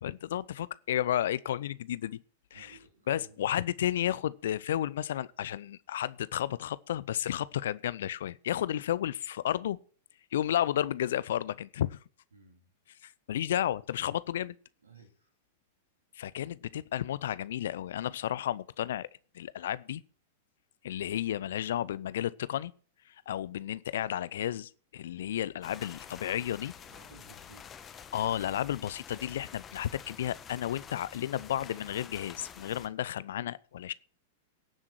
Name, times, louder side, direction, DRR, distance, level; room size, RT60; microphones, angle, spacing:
voice 1, 0.0-2.2 2.5-2.8 3.1-9.8 10.3-12.0 13.0-14.6 16.1-19.1 19.3-20.0 20.8-22.7 23.1-26.7 28.1-33.9, left 11 dB, 60° left, 0.5 m, -32 dB
voice 2, 2.5-3.5 12.3-12.7 14.8-15.3 26.8-27.8, right 4 dB, 75° right, 3.2 m, -56 dB
sound 1, 25.6-32.9, left 8 dB, 25° left, 1.3 m, -49 dB
17.5 x 7.4 x 4.6 m
figure-of-eight pair, 95°, 0 cm